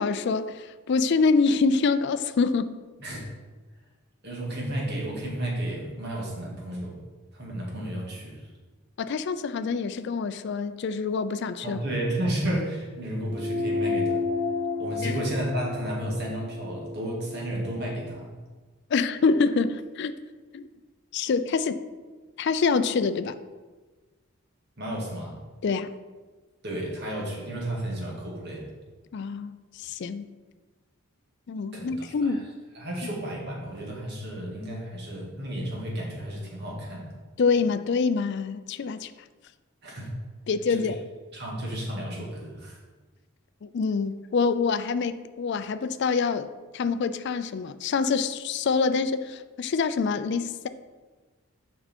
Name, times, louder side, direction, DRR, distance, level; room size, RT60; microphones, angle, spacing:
voice 1, 0.0-2.7 9.0-11.8 15.0-15.1 18.9-20.1 20.5-20.7 21.1-21.8 22.4-23.4 25.6-25.9 29.1-30.3 31.5-32.5 37.4-39.1 40.5-41.0 43.6-50.7, left 4 dB, 55° left, 12 dB, 0.4 m, -26 dB
voice 2, 4.2-7.0 7.3-8.5 11.6-14.2 14.8-18.3 24.8-25.4 26.6-28.7 31.7-32.4 32.7-37.1 39.8-40.1 40.7-40.9 41.3-42.8, right 1 dB, 50° right, -2 dB, 1.9 m, -32 dB
sound 1, 13.3-18.1, left 3 dB, 25° left, 2.3 m, -31 dB
6.6 x 5.6 x 4.3 m, 1.3 s
head